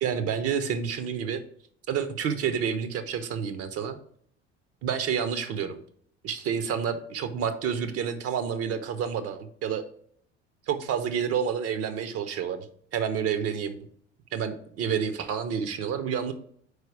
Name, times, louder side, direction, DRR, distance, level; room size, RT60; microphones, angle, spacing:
voice 1, 0.0-1.4 1.9-4.0 4.8-5.8 6.2-9.8 10.7-12.7 12.9-13.8 14.3-16.3, right 7 dB, 45° right, 10 dB, 0.7 m, -29 dB
4.8 x 4.6 x 4.6 m, 0.62 s
figure-of-eight pair, 55°, 34 cm